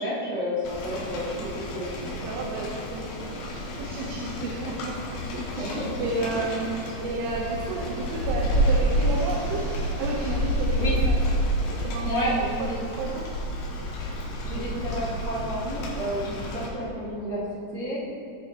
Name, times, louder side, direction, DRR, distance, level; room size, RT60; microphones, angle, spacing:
voice 1, 0.0-1.9 5.6-5.9 10.8-10.9 12.1-12.7 14.4-17.4 17.7-18.0, equal, 40° right, -10 dB, 0.9 m, -30 dB
Rain, 0.6-16.7, equal, 85° left, 4.6 m, -29 dB
voice 2, 2.0-3.3 3.8-9.6 10.0-11.2 11.8-12.1 12.6-12.7 13.0-13.3, right 2 dB, 80° right, -2 dB, 3.5 m, -32 dB
Fixed-wing aircraft airplane, 3.5-10.9, right 1 dB, 60° right, 5.0 m, -42 dB
19.5 x 7.1 x 3.0 m, 2.5 s
omnidirectional pair, 5.9 m